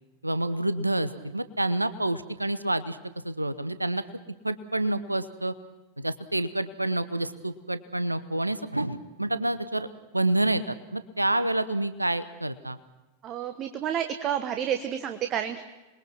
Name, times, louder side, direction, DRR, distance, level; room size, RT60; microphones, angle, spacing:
voice 1, 0.2-3.0 3.2-4.0 4.4-5.5 6.0-9.9 10.1-12.8, right 1 dB, 85° right, 14 dB, 0.9 m, -28 dB
voice 2, 13.2-15.6, right 9 dB, 30° right, 8 dB, 1.3 m, -30 dB
27.0 x 21.5 x 6.1 m, 1.1 s
figure-of-eight pair, 90°, 0 cm